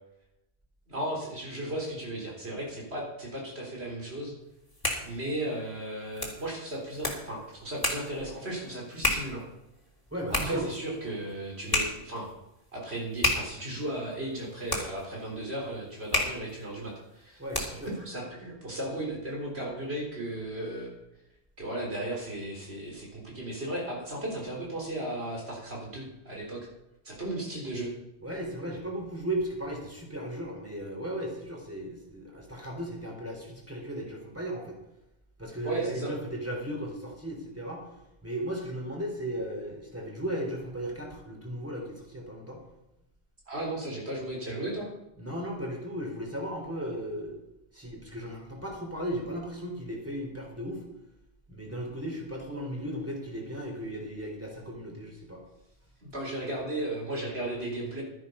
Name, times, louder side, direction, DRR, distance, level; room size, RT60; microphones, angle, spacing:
voice 1, 0.9-4.3 5.0-9.4 10.3-12.3 12.7-17.4 17.7-20.9 21.6-26.7 27.0-27.9 35.6-36.1 43.5-44.9 56.0-58.0, right 1 dB, 70° right, -1 dB, 4.0 m, -35 dB
sound 1, 4.5-18.0, left 1 dB, 20° left, 2.6 m, -34 dB
voice 2, 10.1-10.7 17.4-17.9 28.2-34.8 35.4-37.8 38.2-42.6 45.2-47.4 47.7-50.8 51.5-55.4, right 1 dB, 15° right, 0 dB, 3.3 m, -36 dB
12.0 x 10.0 x 5.5 m, 0.90 s
omnidirectional pair, 1.1 m